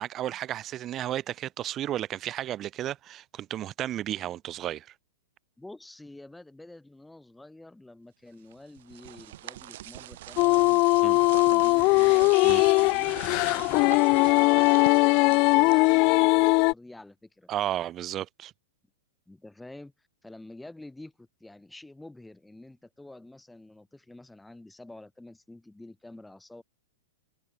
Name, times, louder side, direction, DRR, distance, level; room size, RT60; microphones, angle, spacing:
voice 1, 0.0-4.9 11.0-11.2 12.4-12.6 17.5-18.5, right 12 dB, 30° right, 0.7 m, -33 dB
voice 2, 5.6-17.5 19.3-26.6, left 2 dB, 5° left, 6.7 m, -48 dB
sound 1, 8.5-16.3, right 15 dB, 60° right, 2.6 m, -43 dB
sound 2, 10.4-16.7, left 28 dB, 45° left, 0.4 m, -20 dB
hypercardioid pair, 115°, 0 cm